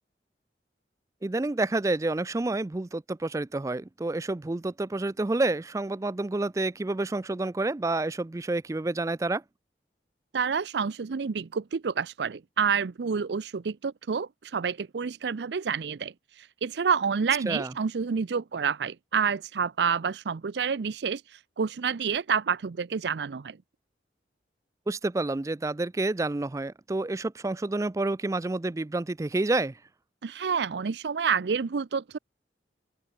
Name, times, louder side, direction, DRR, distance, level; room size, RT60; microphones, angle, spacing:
voice 1, 1.2-9.4 17.5-17.7 24.9-29.8, right 2 dB, 20° right, 0.4 m, -29 dB
voice 2, 10.3-16.1 16.6-21.2 21.6-23.6 30.2-32.2, right 6 dB, 75° right, 0.5 m, -28 dB
open air
head